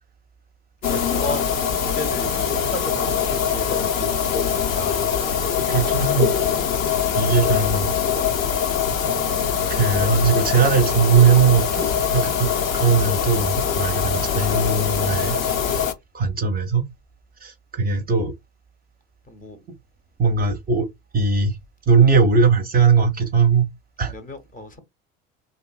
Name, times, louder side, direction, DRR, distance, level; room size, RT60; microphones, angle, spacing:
sound 1, 0.8-15.9, left 7 dB, 85° left, 0.5 m, -23 dB
voice 1, 0.9-5.5 19.3-19.6 24.1-24.8, left 2 dB, 20° left, 0.6 m, -34 dB
voice 2, 5.7-6.3 7.2-7.9 9.7-15.4 16.1-16.9 17.4-18.3 20.2-20.9 21.1-21.6 21.9-23.7 24.0-24.1, right 5 dB, 25° right, 0.5 m, -19 dB
2.7 x 2.5 x 2.2 m
figure-of-eight pair, 65°, 40 cm